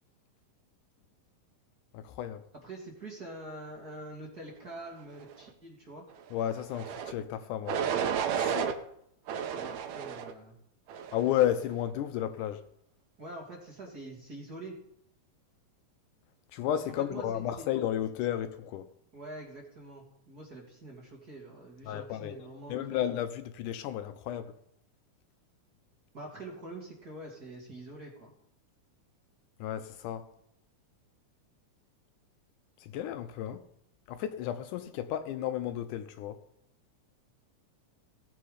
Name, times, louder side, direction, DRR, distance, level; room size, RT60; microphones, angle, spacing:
voice 1, 1.9-2.4 6.3-7.9 8.3-8.7 11.1-12.6 16.5-18.9 21.9-24.5 29.6-30.3 32.8-33.6 34.1-36.4, left 11 dB, 80° left, 2.1 m, -33 dB
voice 2, 2.6-6.0 9.5-10.6 13.2-14.8 16.9-17.7 19.1-23.0 26.1-28.3, right 2 dB, 35° right, 2.0 m, -45 dB
sound 1, 6.7-7.1 7.7-8.7 9.3-10.3 10.9-11.3, right 8 dB, 75° right, 1.9 m, -32 dB
16.0 x 7.8 x 4.9 m
omnidirectional pair, 3.8 m